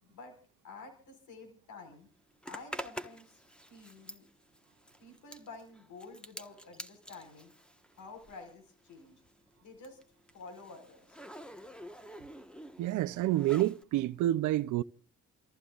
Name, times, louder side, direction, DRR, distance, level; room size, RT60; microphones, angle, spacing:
voice 1, 0.0-0.4 0.6-2.1 2.5-4.3 5.0-7.5 8.0-9.2 9.6-10.0 10.3-11.2, left 3 dB, 70° left, 5.2 m, -50 dB
Zipper (clothing), 2.4-8.6 8.9-13.8, equal, 5° left, 1.3 m, -48 dB
voice 2, 12.8-14.8, right 14 dB, 80° right, 0.6 m, -28 dB
29.5 x 14.5 x 2.5 m
cardioid pair, 90°, 30 cm